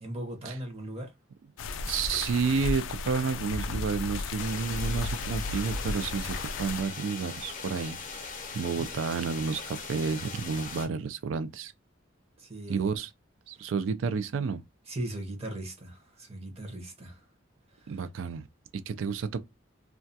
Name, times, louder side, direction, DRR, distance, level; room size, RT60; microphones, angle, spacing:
voice 1, 0.0-1.1 12.4-12.9 14.9-17.2 17.8-18.0, right 1 dB, 30° right, 0.7 m, -38 dB
sound 1, 1.6-6.8, left 3 dB, 70° left, 0.3 m, -34 dB
voice 2, 1.9-11.7 12.7-13.1 13.5-14.6 17.9-18.5 18.7-19.4, right 5 dB, 70° right, 0.4 m, -31 dB
sound 2, 4.4-10.9, left 5 dB, 40° left, 0.6 m, -40 dB
2.3 x 2.2 x 2.6 m
head